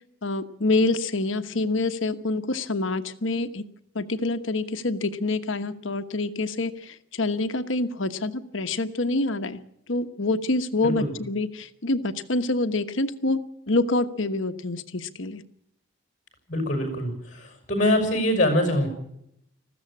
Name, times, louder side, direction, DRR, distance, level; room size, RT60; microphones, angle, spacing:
voice 1, 0.2-3.6 3.9-9.6 9.9-13.4 13.7-15.4, left 2 dB, 75° left, 9 dB, 1.2 m, -26 dB
voice 2, 16.5-18.9, left 1 dB, 35° left, 6 dB, 6.3 m, -24 dB
20.5 x 15.0 x 8.6 m, 0.77 s
head